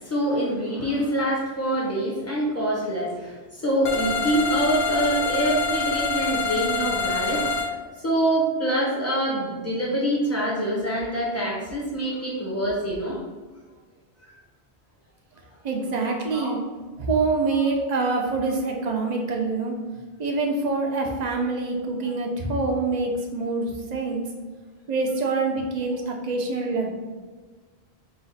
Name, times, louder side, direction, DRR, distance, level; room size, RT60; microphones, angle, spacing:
voice 1, 0.0-13.3 16.3-16.5 17.5-17.6, right 1 dB, 15° left, -4 dB, 0.8 m, -25 dB
sound 1, 3.8-7.7, left 3 dB, 50° left, 0.6 m, -26 dB
voice 2, 15.6-16.6 17.0-19.7 20.2-24.2 24.9-26.9, right 3 dB, 45° right, 1 dB, 0.6 m, -25 dB
4.1 x 2.4 x 4.0 m, 1.4 s
omnidirectional pair, 1.1 m